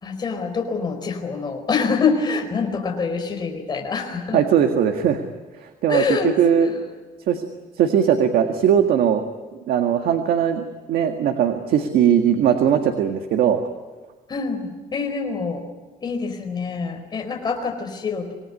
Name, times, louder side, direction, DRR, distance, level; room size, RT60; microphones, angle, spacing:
voice 1, 0.0-4.4 5.9-6.8 14.3-15.6 16.0-18.3, left 5 dB, 30° left, 4 dB, 4.5 m, -25 dB
voice 2, 4.3-5.2 5.8-6.7 7.3-7.5 7.8-9.3 9.7-13.6, right 8 dB, 90° right, 5 dB, 1.9 m, -19 dB
26.5 x 19.5 x 9.9 m, 1.3 s
cardioid pair, 165°, 15 cm